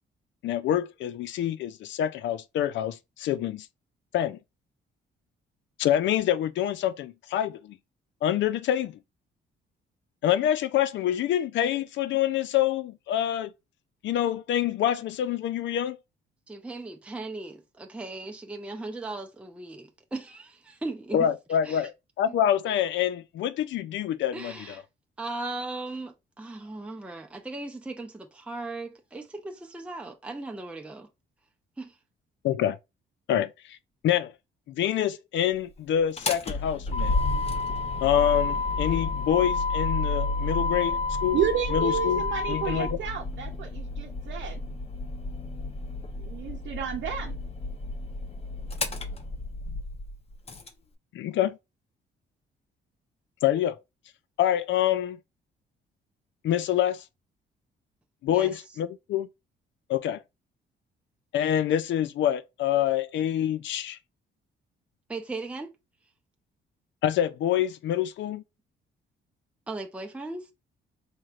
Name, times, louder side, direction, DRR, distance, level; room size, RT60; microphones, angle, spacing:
voice 1, 0.4-3.7 4.1-4.4 5.8-7.8 8.2-9.0 10.2-13.5 14.0-16.0 21.1-24.5 32.4-32.8 33.3-33.8 34.0-34.3 34.7-37.2 38.0-41.4 41.7-43.0 51.1-51.6 53.4-53.8 54.4-55.2 56.4-57.0 58.2-59.3 59.9-60.2 61.3-64.0 67.0-68.4, left 11 dB, 70° left, 0.5 m, -26 dB
voice 2, 16.5-21.3 21.6-21.9 24.3-24.8 25.2-31.1 31.8-32.0 58.3-58.6 65.1-65.8 69.7-70.5, right 2 dB, 5° right, 0.6 m, -37 dB
Motor vehicle (road), 36.0-50.7, left 3 dB, 30° left, 0.7 m, -30 dB
voice 3, 41.3-44.6 46.2-47.4, right 8 dB, 70° right, 0.8 m, -31 dB
4.3 x 3.1 x 2.4 m
cardioid pair, 90°, 20 cm